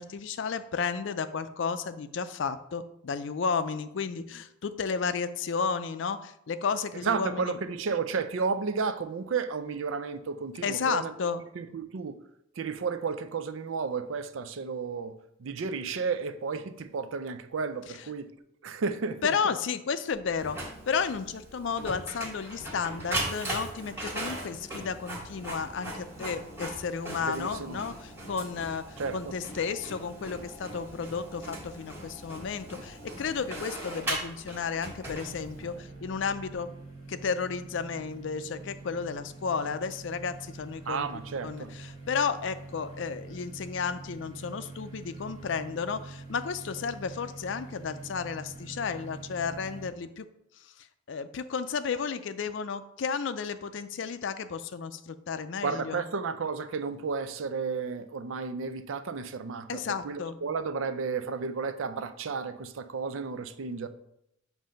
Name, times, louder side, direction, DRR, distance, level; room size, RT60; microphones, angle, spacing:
voice 1, 0.0-7.5 10.6-11.4 19.2-20.6 20.9-28.8 29.1-36.7 37.1-41.1 41.4-41.7 42.1-50.3 51.1-56.0 59.7-60.4, left 5 dB, 60° left, 0.4 m, -32 dB
voice 2, 7.0-11.1 11.5-12.1 12.6-15.1 15.4-18.3 18.6-19.5 27.2-27.8 29.0-29.3 40.9-41.7 55.6-63.9, right 5 dB, 75° right, 0.4 m, -32 dB
sound 1, 20.1-36.5, right 2 dB, 50° right, 1.0 m, -53 dB
Printer, 20.4-35.8, right 1 dB, 10° right, 1.5 m, -39 dB
sound 2, 35.1-49.9, right 3 dB, 35° right, 1.6 m, -45 dB
7.5 x 2.6 x 5.1 m
head